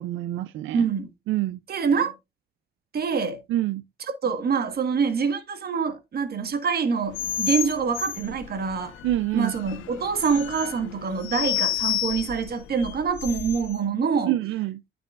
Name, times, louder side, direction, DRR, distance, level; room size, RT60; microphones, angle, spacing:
voice 1, 0.0-0.9 1.3-1.6 3.5-3.8 9.0-9.5 14.3-14.8, right 15 dB, 80° right, 0.4 m, -26 dB
voice 2, 0.7-1.1 1.7-2.1 2.9-3.4 4.0-8.9 9.3-14.3, right 5 dB, 50° right, 1.4 m, -25 dB
sound 1, 7.1-13.8, left 11 dB, 85° left, 0.9 m, -31 dB
9.3 x 6.8 x 2.4 m
cardioid pair, 90°, 20 cm